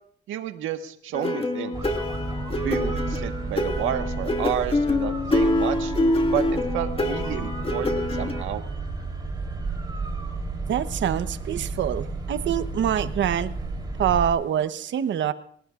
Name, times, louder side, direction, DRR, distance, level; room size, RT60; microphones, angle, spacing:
voice 1, 0.3-1.8 2.6-5.9 6.3-6.4 6.7-8.6, right 10 dB, 90° right, 6 dB, 1.5 m, -30 dB
sound 1, 1.1-8.4, left 2 dB, 30° left, 2.3 m, -26 dB
sound 2, 1.7-14.3, right 3 dB, 20° right, 3.7 m, -32 dB
voice 2, 10.7-13.5 14.0-15.3, right 9 dB, 70° right, 11 dB, 1.1 m, -25 dB
29.5 x 18.5 x 2.5 m, 0.63 s
cardioid pair, 90°, 20 cm